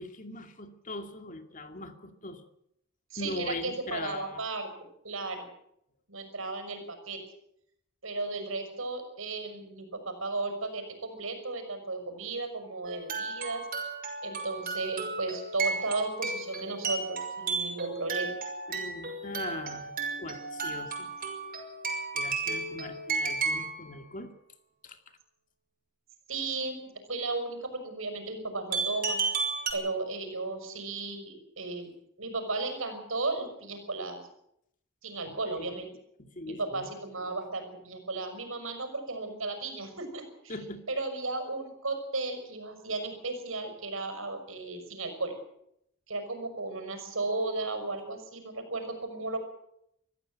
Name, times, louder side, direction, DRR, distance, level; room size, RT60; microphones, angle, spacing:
voice 1, 0.0-2.5 3.2-4.4 18.7-19.9 20.2-21.1 22.1-24.3 24.8-25.0 35.2-35.8 36.2-36.9 40.5-40.8, left 2 dB, 40° left, 6 dB, 2.4 m, -40 dB
voice 2, 3.1-4.7 5.0-5.5 6.1-7.2 8.0-13.7 14.2-18.3 26.3-29.2 29.7-34.2 35.0-35.9 36.5-40.5 40.9-45.3 46.1-49.4, right 3 dB, 80° right, 8 dB, 6.0 m, -35 dB
sound 1, 12.9-23.8 28.7-29.7, right 4 dB, 45° right, 5.8 m, -33 dB
24.5 x 15.0 x 7.9 m, 0.75 s
head